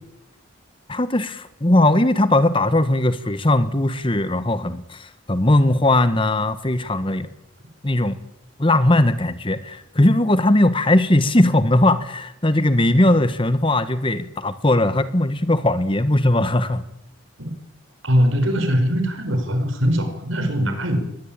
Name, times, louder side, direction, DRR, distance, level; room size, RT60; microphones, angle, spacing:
voice 1, 0.9-7.3 7.8-8.2 8.6-16.8, left 1 dB, 25° left, 13 dB, 1.3 m, -19 dB
voice 2, 18.0-21.2, equal, 75° right, 7 dB, 5.2 m, -21 dB
22.5 x 20.0 x 8.9 m, 0.81 s
head